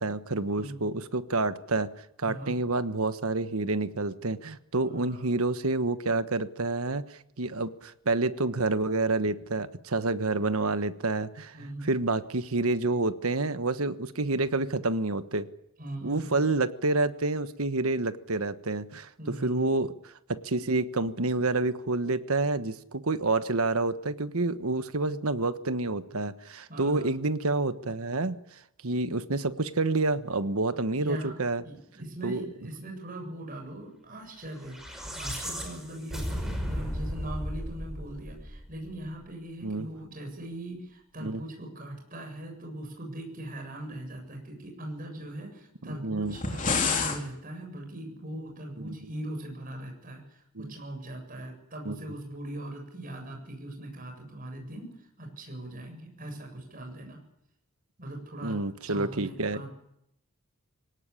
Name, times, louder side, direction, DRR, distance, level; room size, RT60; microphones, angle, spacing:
voice 1, 0.0-1.9 2.2-15.5 16.0-19.1 19.4-19.9 20.3-28.4 28.8-31.6 32.2-32.4 39.6-39.9 41.2-41.4 45.9-46.4 50.5-50.7 51.8-52.0 58.4-59.7, right 2 dB, 75° right, 11 dB, 1.3 m, -28 dB
voice 2, 2.2-2.5 4.9-5.3 11.5-11.9 15.8-16.4 19.2-19.6 26.7-27.1 30.7-31.4 31.6-57.2 58.0-59.7, right 1 dB, 40° right, 2 dB, 7.6 m, -40 dB
sound 1, 34.6-39.0, equal, ahead, 5.4 m, -35 dB
sound 2, 46.3-47.2, left 4 dB, 35° left, 3.4 m, -27 dB
24.0 x 18.0 x 10.0 m, 0.78 s
head